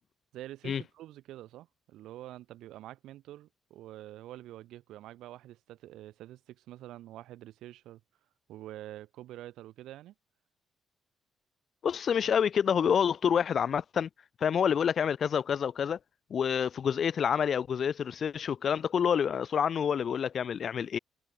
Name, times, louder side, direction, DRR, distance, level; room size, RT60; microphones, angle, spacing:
voice 1, 0.3-8.0 8.5-10.1, right 14 dB, 85° right, 3.5 m, -46 dB
voice 2, 11.8-14.1 14.4-16.0 16.3-21.0, left 7 dB, 55° left, 0.9 m, -28 dB
cardioid pair, 90°, 0 cm